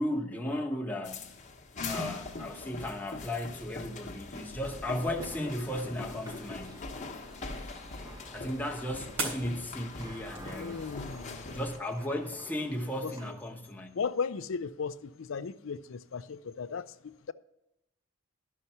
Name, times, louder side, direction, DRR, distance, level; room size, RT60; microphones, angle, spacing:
voice 1, 0.0-1.3 1.8-6.9 8.3-10.9 11.5-14.0, left 1 dB, 10° left, 0.9 m, -35 dB
sound 1, 1.0-11.8, left 3 dB, 35° left, 1.1 m, -42 dB
sound 2, 5.0-13.3, right 1 dB, 20° right, 0.8 m, -52 dB
sound 3, 6.3-11.4, right 3 dB, 85° right, 3.3 m, -43 dB
voice 2, 10.5-11.5 13.0-13.1 13.9-17.3, left 5 dB, 75° left, 0.5 m, -36 dB
12.0 x 5.7 x 5.5 m
head